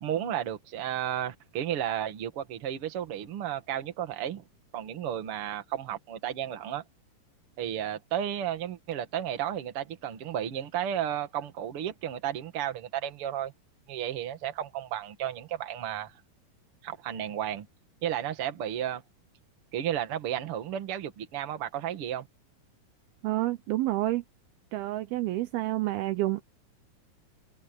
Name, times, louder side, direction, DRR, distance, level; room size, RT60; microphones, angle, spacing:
voice 1, 0.0-4.4 4.7-6.8 7.6-13.5 13.9-16.1 16.8-17.7 18.0-19.0 19.7-22.3, right 10 dB, 45° right, 2.1 m, -33 dB
voice 2, 23.2-24.2 24.7-26.4, right 16 dB, 75° right, 2.5 m, -29 dB
open air
omnidirectional pair, 4.7 m